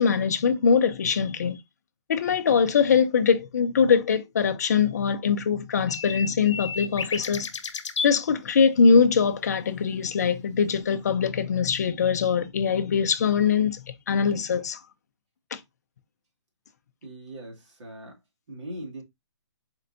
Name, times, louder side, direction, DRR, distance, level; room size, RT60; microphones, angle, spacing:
voice 1, 0.0-1.6 2.1-7.5 8.0-13.8 14.1-14.8 15.5-15.6, left 6 dB, 35° left, 0.4 m, -22 dB
sound 1, 5.9-8.1 10.9-11.0, left 5 dB, 75° left, 0.7 m, -32 dB
voice 2, 17.0-18.2 18.5-19.0, right 1 dB, 75° right, 2.0 m, -40 dB
4.3 x 3.9 x 2.6 m
hypercardioid pair, 170°, 15 cm